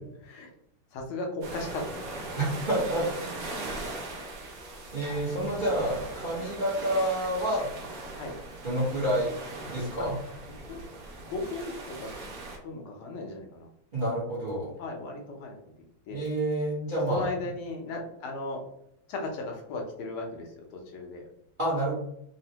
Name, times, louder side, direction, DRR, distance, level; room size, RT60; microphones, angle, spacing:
voice 1, 0.9-2.2 3.4-3.6 8.2-8.3 10.7-10.8 11.3-12.3 12.6-13.7 14.8-15.6 16.1-16.2 17.1-18.6 19.1-21.2, left 2 dB, 75° left, 1 dB, 1.5 m, -36 dB
sound 1, 1.4-12.6, right 2 dB, 80° right, 0.8 m, -40 dB
voice 2, 2.4-3.5 4.9-7.7 8.6-9.3 9.6-10.2 13.9-14.7 16.1-17.3 21.6-21.9, right 1 dB, 45° right, -7 dB, 0.6 m, -28 dB
4.0 x 2.1 x 2.8 m, 0.75 s
omnidirectional pair, 2.4 m